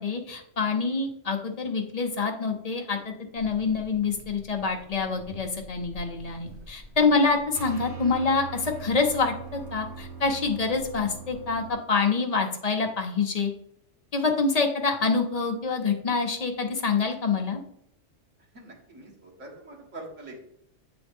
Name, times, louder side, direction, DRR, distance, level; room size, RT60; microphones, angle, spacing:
voice 1, 0.0-13.5 14.1-17.6, left 4 dB, 40° left, 3 dB, 0.6 m, -26 dB
sound 1, 3.3-11.7, right 4 dB, 60° right, 1.4 m, -43 dB
voice 2, 18.5-20.4, right 2 dB, 80° right, -2 dB, 1.9 m, -44 dB
8.3 x 3.9 x 3.4 m, 0.72 s
omnidirectional pair, 1.3 m